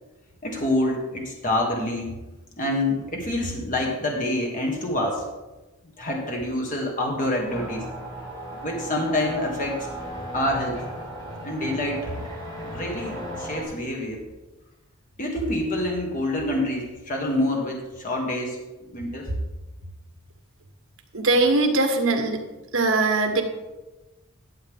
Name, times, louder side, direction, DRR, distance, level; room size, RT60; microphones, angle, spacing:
voice 1, 0.4-2.2 2.6-5.3 6.0-7.9 8.6-9.9 10.3-10.9 11.4-12.3 12.6-14.2 15.2-18.6 18.9-19.3, left 1 dB, 35° left, 0 dB, 1.5 m, -27 dB
sound 1, 7.5-13.6, right 1 dB, 15° left, 2.1 m, -36 dB
voice 2, 21.1-22.4 22.7-23.4, right 2 dB, 65° right, 4 dB, 1.4 m, -21 dB
11.5 x 7.8 x 3.6 m, 1.1 s
head